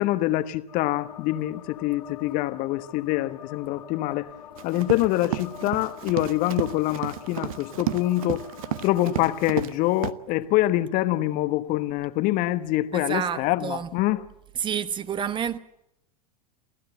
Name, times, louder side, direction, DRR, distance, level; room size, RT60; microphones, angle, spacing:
voice 1, 0.0-4.3 4.6-8.4 8.8-14.2, left 16 dB, 40° left, 1.1 m, -25 dB
sound 1, 0.7-9.6, left 11 dB, 65° left, 1.3 m, -44 dB
Run, 4.6-9.7 10.0-10.1, right 13 dB, 60° right, 1.0 m, -32 dB
voice 2, 12.9-13.9 14.6-15.6, right 8 dB, 25° right, 1.1 m, -29 dB
28.5 x 15.5 x 7.9 m
figure-of-eight pair, 85°, 20 cm